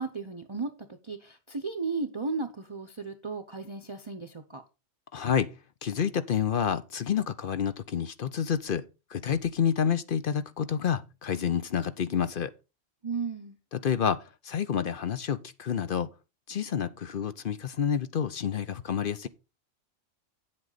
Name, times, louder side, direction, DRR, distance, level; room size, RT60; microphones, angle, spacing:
voice 1, 0.0-4.6 13.0-13.6, right 4 dB, 30° right, 0.7 m, -35 dB
voice 2, 5.1-5.5 5.8-12.5 13.7-16.1 16.5-19.3, left 8 dB, 55° left, 0.8 m, -29 dB
8.8 x 7.8 x 3.9 m
omnidirectional pair, 1.2 m